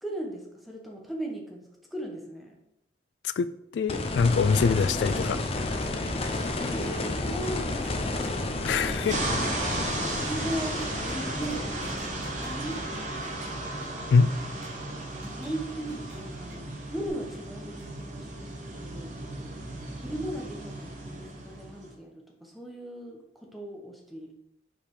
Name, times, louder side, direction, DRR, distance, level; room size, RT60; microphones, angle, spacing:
voice 1, 0.0-2.6 4.9-5.0 6.4-8.5 10.3-12.8 15.2-19.2 20.0-24.3, right 1 dB, ahead, 0 dB, 1.1 m, -38 dB
voice 2, 3.7-5.4 8.6-9.2 14.1-14.3, left 5 dB, 75° left, 13 dB, 0.3 m, -23 dB
sound 1, 3.9-14.8 17.1-17.2, left 2 dB, 35° left, 0.7 m, -32 dB
sound 2, 4.8-16.6 17.8-17.9 18.3-18.4, right 1 dB, 90° right, 2.0 m, -51 dB
sound 3, 9.1-21.9, right 2 dB, 40° right, 1.1 m, -35 dB
5.5 x 5.0 x 4.8 m, 0.84 s
head